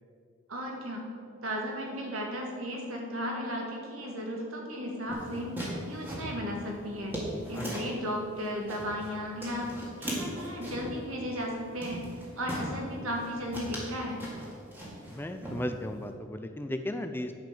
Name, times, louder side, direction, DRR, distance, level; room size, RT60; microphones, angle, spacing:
voice 1, 0.5-1.1 1.4-5.5 5.9-7.1 7.5-9.7 10.0-12.0 12.4-14.2, equal, 90° right, 0 dB, 2.0 m, -35 dB
sound 1, 5.1-8.0 8.4-9.1 9.4-11.0 11.4-11.5 11.8-12.7 13.1-13.3 13.5-15.2 15.4-16.0, right 1 dB, 10° right, 1.9 m, -38 dB
voice 2, 15.1-17.3, left 1 dB, 10° left, 7 dB, 0.4 m, -35 dB
10.5 x 5.2 x 7.7 m, 2.4 s
head